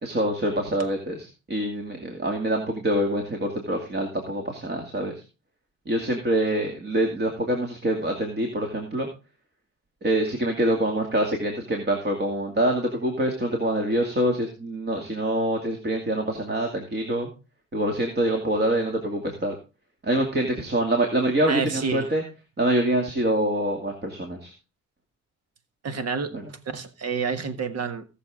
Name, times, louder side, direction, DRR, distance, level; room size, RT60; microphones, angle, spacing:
voice 1, 0.0-5.2 5.9-9.1 10.0-17.3 17.7-19.6 20.0-22.2 22.6-24.5 26.3-26.4, right 1 dB, 35° right, 2.5 m, -25 dB
voice 2, 21.5-22.1 25.8-28.1, right 5 dB, 55° right, 1.5 m, -29 dB
17.5 x 6.8 x 3.7 m
cardioid pair, 90°, 30 cm